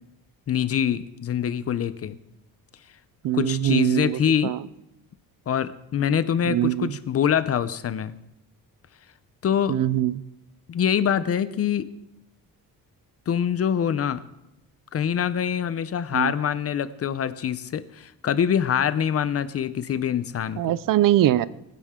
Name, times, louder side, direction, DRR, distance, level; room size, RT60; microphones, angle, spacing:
voice 1, 0.5-2.2 3.3-4.5 5.5-8.1 9.4-9.7 10.7-11.8 13.3-14.2 14.9-20.7, left 8 dB, 40° left, 14 dB, 0.6 m, -24 dB
voice 2, 3.2-4.6 6.4-7.0 9.7-10.2 16.1-16.3 20.6-21.5, right 13 dB, 65° right, 19 dB, 0.5 m, -22 dB
23.5 x 10.0 x 3.7 m, 0.91 s
wide cardioid pair, 180°, 36 cm